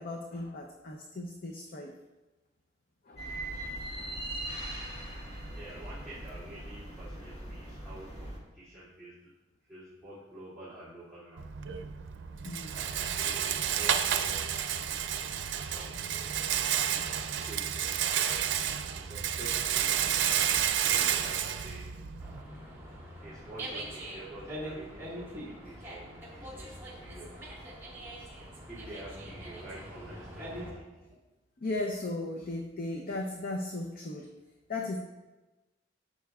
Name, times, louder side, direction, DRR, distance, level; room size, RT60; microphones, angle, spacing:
voice 1, 0.0-1.9 3.1-3.3 4.0-4.2 12.4-12.8 16.9-17.0 18.6-18.8 28.2-28.3 31.6-34.3 34.7-35.0, left 2 dB, 50° left, 2 dB, 0.6 m, -37 dB
sound 1, 3.2-8.4, right 1 dB, 35° left, 1.6 m, -40 dB
voice 2, 5.5-9.1 9.7-11.4 12.7-14.5 15.5-16.3 16.9-17.9 18.9-20.3 20.8-21.9 23.2-27.4 28.7-30.9, right 1 dB, 5° left, -13 dB, 2.5 m, -48 dB
Rattle, 11.4-22.4, right 9 dB, 85° right, 0.5 m, -30 dB
Dog, 22.2-30.7, right 1 dB, 15° right, 1.8 m, -43 dB
11.5 x 6.8 x 2.4 m, 1.1 s
head